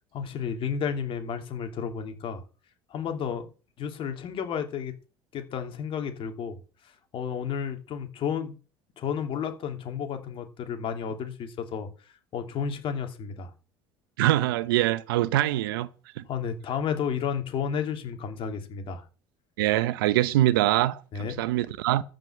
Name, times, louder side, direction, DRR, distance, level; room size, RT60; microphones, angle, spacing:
voice 1, 0.1-2.4 2.9-3.5 3.8-4.9 5.3-8.5 9.0-11.9 12.3-13.5 16.3-19.0 21.1-21.4, left 7 dB, 50° left, 2.7 m, -32 dB
voice 2, 14.2-15.9 16.2-16.3 19.6-22.0, right 15 dB, 85° right, 0.8 m, -24 dB
13.0 x 5.4 x 7.8 m
supercardioid pair, 85°, 11 cm